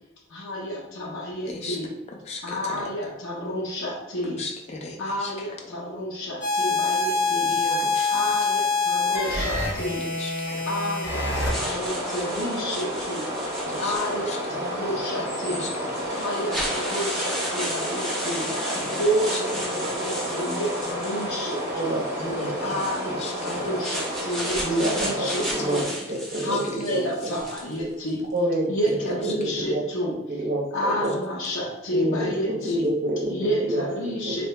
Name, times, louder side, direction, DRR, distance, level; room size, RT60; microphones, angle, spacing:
voice 1, 0.3-1.9 2.4-4.4 5.0-7.5 8.1-10.1 10.7-13.3 13.8-15.7 16.1-18.5 18.9-22.0 22.6-25.9 26.3-28.2 28.6-30.2 30.7-32.9 33.3-34.5, equal, 85° left, -3 dB, 0.7 m, -30 dB
voice 2, 4.3-5.0 5.2-5.3 7.5-8.1 10.2-10.5 11.6-11.8 13.7-13.9 14.3-14.4 15.4-15.7 16.1-16.2 18.5-19.0 22.2-22.8 23.2-23.6, left 3 dB, 35° left, 0 dB, 0.5 m, -36 dB
sound 1, 6.4-11.5, left 4 dB, 60° left, 1.1 m, -25 dB
sound 2, 11.1-25.8, equal, 15° right, 1.0 m, -31 dB
sound 3, 11.3-14.5 15.3-15.4 15.9-21.7 22.6-27.8, equal, ahead, 0.7 m, -34 dB
voice 3, 19.7-20.2 21.7-22.7 23.7-23.8 24.6-25.8 26.1-27.3 28.3-29.8 30.3-31.1 31.9-34.4, right 1 dB, 45° right, -2 dB, 0.5 m, -28 dB
2.8 x 2.6 x 3.3 m, 0.92 s
head